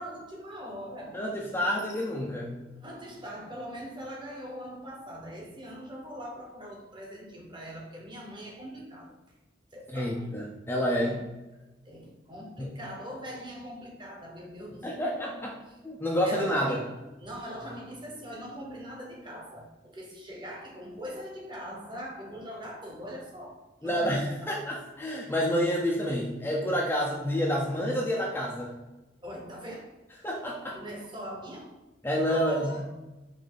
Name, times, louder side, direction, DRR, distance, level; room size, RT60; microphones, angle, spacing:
voice 1, 0.0-1.2 2.7-9.2 9.7-10.3 11.1-11.2 11.8-15.2 15.7-15.8 16.2-24.7 29.2-29.9 30.7-31.8 32.2-33.0, equal, 25° right, -1 dB, 0.9 m, -42 dB
voice 2, 1.1-2.6 9.9-11.2 12.6-12.7 14.8-15.5 15.8-16.8 23.8-28.7 30.2-30.8 32.0-32.8, equal, 10° left, -3 dB, 0.5 m, -29 dB
5.1 x 2.7 x 3.8 m, 1.1 s
head